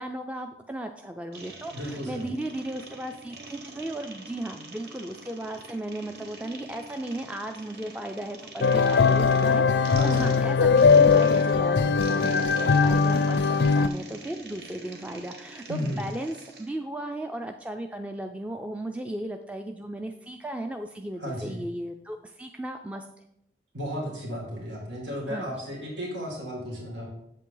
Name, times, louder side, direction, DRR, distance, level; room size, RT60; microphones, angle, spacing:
voice 1, 0.0-23.1 25.3-25.5, right 1 dB, 5° right, 5 dB, 0.3 m, -36 dB
sound 1, 1.3-16.7, right 2 dB, 60° right, 1.2 m, -44 dB
voice 2, 1.7-2.3 9.9-10.3 15.7-16.0 21.2-21.6 23.7-27.1, equal, 90° right, -2 dB, 2.5 m, -34 dB
sound 2, 8.6-13.9, left 5 dB, 70° left, 0.4 m, -20 dB
8.1 x 7.4 x 3.8 m, 0.81 s
head